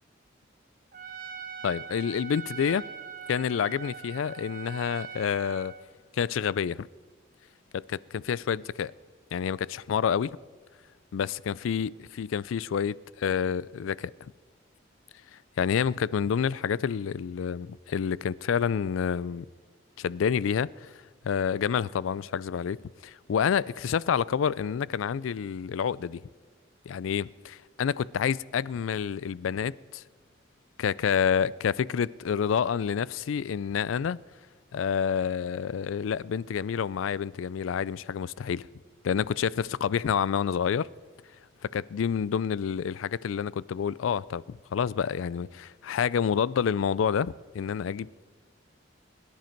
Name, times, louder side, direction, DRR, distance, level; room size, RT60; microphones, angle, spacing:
Trumpet, 0.9-5.8, right 6 dB, 45° right, 1.4 m, -41 dB
voice 1, 1.6-2.8 3.3-5.7 6.1-6.9 7.7-8.9 9.3-10.4 11.1-14.1 15.6-19.5 20.0-20.9 21.2-26.2 26.9-30.0 30.8-34.2 34.7-38.7 39.0-40.9 41.7-48.2, left 7 dB, 85° left, 0.4 m, -28 dB
22.0 x 10.5 x 4.5 m
head